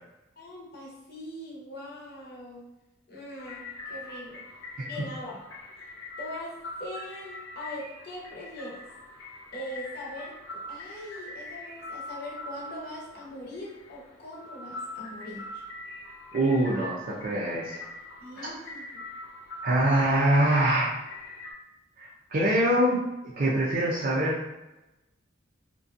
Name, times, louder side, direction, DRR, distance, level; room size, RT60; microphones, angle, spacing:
voice 1, 0.4-2.7 3.1-4.5 4.9-5.4 6.2-8.8 9.5-15.6 18.2-19.0, left 1 dB, 50° left, -4 dB, 0.7 m, -41 dB
sound 1, 3.4-21.5, left 2 dB, 90° left, 0.6 m, -43 dB
voice 2, 16.3-17.8 18.4-18.5 19.6-20.9 22.0-23.0 23.4-24.6, right 1 dB, 45° right, -6 dB, 0.4 m, -24 dB
2.5 x 2.2 x 2.4 m, 1.0 s
head